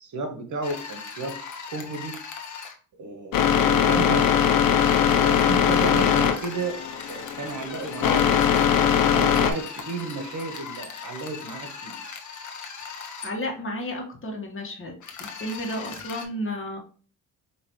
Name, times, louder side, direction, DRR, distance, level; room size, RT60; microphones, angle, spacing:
voice 1, 0.0-1.3 1.7-2.2 3.0-4.3 5.2-6.8 7.1-12.0, right 3 dB, 55° right, 6 dB, 1.1 m, -33 dB
sound 1, 0.6-2.7 4.7-13.3 15.0-16.2, left 5 dB, 55° left, 1.0 m, -39 dB
sound 2, 3.3-9.5, left 8 dB, 75° left, 0.7 m, -20 dB
voice 2, 13.2-14.9 15.2-16.8, left 1 dB, 35° left, 1 dB, 1.6 m, -32 dB
4.9 x 3.0 x 3.1 m, 0.41 s
cardioid pair, 75°, 35 cm